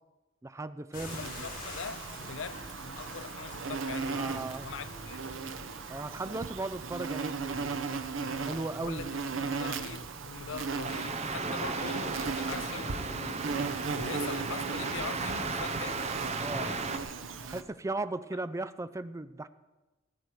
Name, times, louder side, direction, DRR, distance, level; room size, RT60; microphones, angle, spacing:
voice 1, 0.4-1.3 4.1-4.7 5.9-7.8 8.5-9.0 16.4-16.7 17.5-19.5, right 2 dB, 15° right, 0.4 m, -37 dB
sound 1, 0.9-17.5, left 2 dB, 45° left, 4.2 m, -51 dB
Insect, 1.1-17.6, right 4 dB, 75° right, 0.9 m, -37 dB
voice 2, 1.2-5.2 8.7-13.4 13.9-16.8, left 5 dB, 70° left, 0.6 m, -42 dB
sound 2, 10.8-17.0, right 4 dB, 35° right, 0.8 m, -35 dB
18.5 x 9.0 x 4.7 m
head